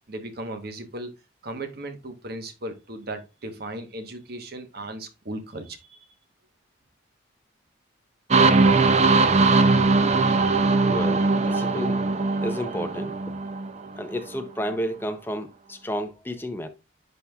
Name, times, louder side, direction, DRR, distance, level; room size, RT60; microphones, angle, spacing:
voice 1, 0.1-1.1 1.4-6.0, right 1 dB, 50° right, 1.1 m, -36 dB
sound 1, 8.3-14.0, right 3 dB, 35° right, 0.5 m, -20 dB
voice 2, 10.9-12.0 12.4-13.2 13.9-16.7, equal, 10° left, 0.6 m, -31 dB
10.5 x 4.1 x 2.3 m
head